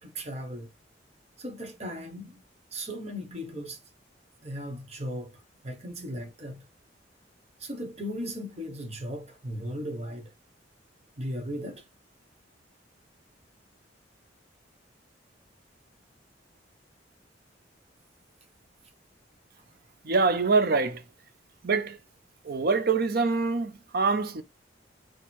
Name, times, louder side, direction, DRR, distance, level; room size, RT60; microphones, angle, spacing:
voice 1, 0.0-0.7 1.4-2.4 2.7-3.8 4.4-6.6 7.6-10.3 11.2-11.8, equal, 35° right, 1.2 m, -37 dB
voice 2, 20.0-21.0 21.6-22.0 22.4-24.4, right 4 dB, 55° right, 0.6 m, -25 dB
4.5 x 2.3 x 4.4 m
head